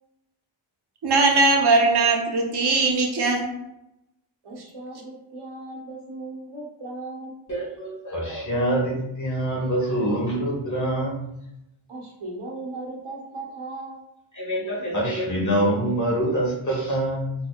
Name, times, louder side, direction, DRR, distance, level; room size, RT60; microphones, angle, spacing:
voice 1, 1.0-3.5, right 3 dB, 55° right, 2 dB, 0.8 m, -20 dB
voice 2, 4.4-7.5 11.9-14.1, right 2 dB, 90° right, -2 dB, 1.1 m, -37 dB
voice 3, 7.5-11.2 14.3-17.3, right 1 dB, 35° left, -5 dB, 1.4 m, -25 dB
3.7 x 3.0 x 2.3 m, 0.84 s
wide cardioid pair, 100°, 49 cm